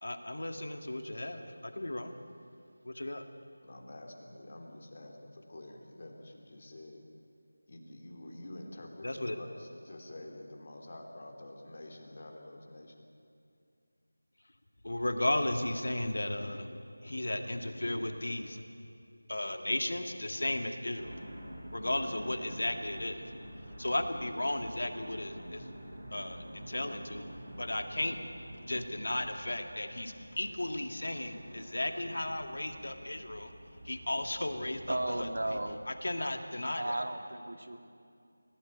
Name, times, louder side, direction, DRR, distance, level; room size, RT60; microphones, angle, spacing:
voice 1, 0.0-2.1 2.8-3.2 9.0-9.4 14.8-18.7 19.3-21.1 21.7-23.2 23.8-25.7 26.1-27.3 27.6-28.2 28.6-33.5 33.8-35.3 35.9-37.0, left 1 dB, 70° left, 6 dB, 2.1 m, -35 dB
voice 2, 3.6-7.0 7.7-12.9 37.7-37.8, left 1 dB, 45° left, 2 dB, 3.5 m, -48 dB
sound 1, 20.9-35.7, equal, 15° right, 6.2 m, -48 dB
voice 3, 34.9-35.8 36.8-37.8, right 1 dB, 75° right, 6 dB, 2.2 m, -34 dB
24.0 x 17.0 x 9.2 m, 2.4 s
figure-of-eight pair, 170°, 0 cm